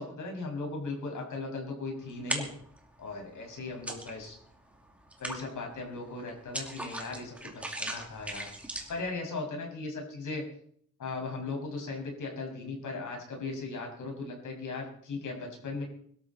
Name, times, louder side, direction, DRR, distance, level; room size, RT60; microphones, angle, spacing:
voice 1, 0.0-2.5 3.0-4.4 5.2-8.5 8.9-10.4 11.0-15.8, left 3 dB, 85° left, 1 dB, 6.1 m, -37 dB
sound 1, 2.1-2.8 3.2-4.5 4.8-9.1, right 1 dB, 5° right, 2.5 m, -38 dB
24.0 x 13.0 x 4.2 m, 0.62 s
wide cardioid pair, 170°, 30 cm